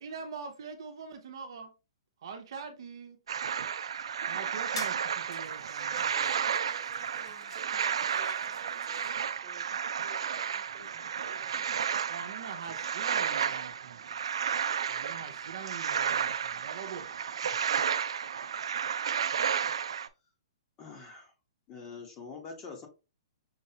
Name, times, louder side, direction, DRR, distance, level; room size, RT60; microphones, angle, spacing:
voice 1, 0.0-1.7 2.2-3.2 4.3-6.1 12.0-14.4 14.9-17.1, right 6 dB, 55° right, 0.8 m, -44 dB
sound 1, 3.3-20.1, right 8 dB, 80° right, 0.4 m, -32 dB
sound 2, 4.1-4.2 4.8-5.1 5.3-9.2, left 4 dB, 70° left, 1.5 m, -48 dB
voice 2, 5.6-9.7 10.0-11.9, right 5 dB, 35° right, 1.3 m, -54 dB
voice 3, 20.8-21.3 21.7-22.9, left 4 dB, 20° left, 1.1 m, -44 dB
5.6 x 3.1 x 2.8 m
hypercardioid pair, 170°, 3 cm